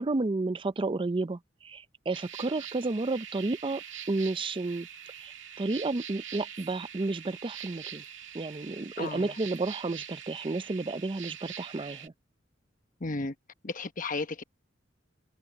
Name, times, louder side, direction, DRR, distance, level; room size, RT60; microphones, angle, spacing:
voice 1, 0.0-4.9 5.2-8.0 8.3-12.1, right 3 dB, 25° right, 0.5 m, -32 dB
sound 1, 2.1-12.1, right 9 dB, 80° right, 2.1 m, -44 dB
voice 2, 9.0-9.4 13.0-13.3 13.6-14.4, left 3 dB, 45° left, 1.1 m, -34 dB
head